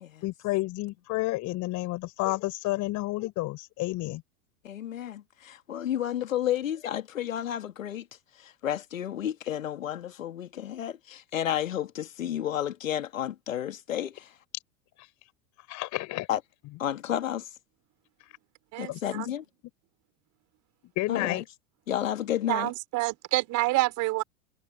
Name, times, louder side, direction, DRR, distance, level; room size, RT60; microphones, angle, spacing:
voice 1, 0.2-4.2 15.7-16.3 18.9-19.0 21.0-21.4, left 19 dB, 45° left, 4.9 m, -30 dB
voice 2, 4.6-8.0 8.4-14.3 16.3-16.4 16.8-17.5 18.8-19.4 21.1-21.4 21.9-22.7, left 11 dB, 75° left, 1.9 m, -31 dB
voice 3, 18.7-19.3 22.5-24.2, right 21 dB, 45° right, 5.2 m, -28 dB
figure-of-eight pair, 85°, 40 cm